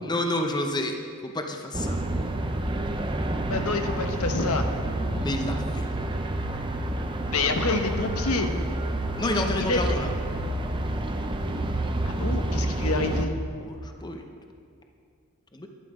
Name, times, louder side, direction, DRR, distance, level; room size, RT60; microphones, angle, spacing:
voice 1, 0.0-1.0 1.2-2.0 5.2-5.9 9.2-10.1 13.6-14.2 15.5-15.7, left 1 dB, 20° left, 4 dB, 0.7 m, -29 dB
sound 1, 1.7-13.3, right 1 dB, 20° right, 0.6 m, -29 dB
voice 2, 3.4-4.6 7.3-8.5 9.2-9.9 12.2-13.3, left 3 dB, 75° left, 6 dB, 1.0 m, -27 dB
11.5 x 11.0 x 4.9 m, 2.3 s
head